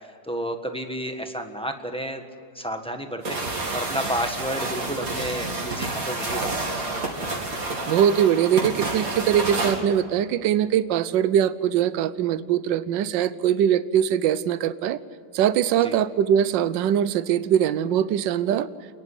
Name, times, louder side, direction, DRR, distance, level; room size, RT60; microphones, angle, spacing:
voice 1, 0.3-2.2 2.5-3.4 3.7-6.6 15.8-16.0, equal, 5° left, 5 dB, 1.3 m, -31 dB
sound 1, 3.2-9.8, right 2 dB, 50° right, 3.0 m, -29 dB
voice 2, 7.9-15.0 15.3-18.7, right 9 dB, 80° right, 15 dB, 1.4 m, -22 dB
29.0 x 10.5 x 9.9 m, 2.2 s
omnidirectional pair, 2.0 m